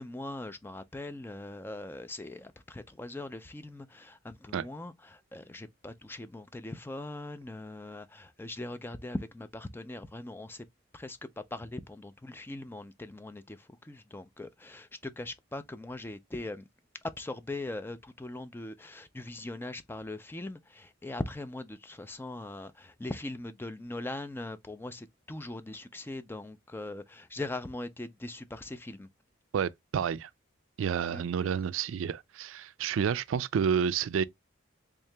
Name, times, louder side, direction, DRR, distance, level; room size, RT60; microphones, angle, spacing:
voice 1, 0.0-10.7 10.9-16.7 17.0-29.1 31.1-31.2, left 2 dB, 10° left, 0.3 m, -40 dB
voice 2, 29.5-30.3 30.8-34.2, right 7 dB, 80° right, 0.3 m, -30 dB
3.5 x 2.8 x 3.2 m
head